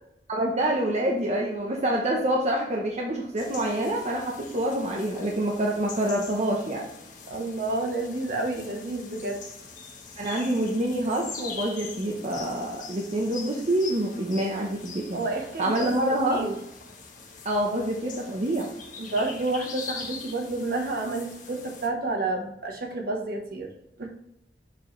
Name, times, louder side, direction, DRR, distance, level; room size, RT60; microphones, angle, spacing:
voice 1, 0.3-6.9 10.2-15.2 15.6-16.5 17.4-18.7, right 1 dB, 40° right, -1 dB, 0.8 m, -26 dB
sound 1, 3.4-21.9, left 4 dB, 45° left, 1.2 m, -43 dB
voice 2, 7.3-9.4 15.1-16.5 19.0-23.7 24.0-24.1, right 2 dB, 55° right, 2 dB, 1.1 m, -30 dB
6.8 x 4.6 x 3.2 m, 0.83 s
head